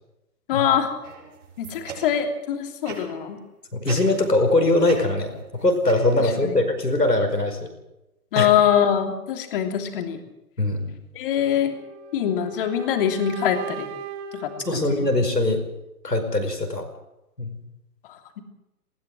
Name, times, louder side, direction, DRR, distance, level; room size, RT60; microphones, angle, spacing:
voice 1, 0.5-0.9 1.6-3.4 6.2-6.6 8.3-10.2 11.1-11.8 12.1-13.9 14.3-15.1 18.1-18.4, left 9 dB, 35° left, 5 dB, 3.1 m, -23 dB
sound 1, 1.0-2.4 2.8-3.3 3.8-4.5 4.8-6.5, right 5 dB, 50° right, 6.2 m, -40 dB
voice 2, 3.7-7.7 8.3-8.5 10.6-11.0 14.7-15.6 16.0-16.9 17.4-17.6, left 2 dB, 90° left, 5 dB, 5.2 m, -22 dB
sound 2, 11.7-15.7, right 5 dB, 15° right, 0.9 m, -38 dB
20.0 x 18.0 x 7.6 m, 0.91 s
figure-of-eight pair, 135°, 47 cm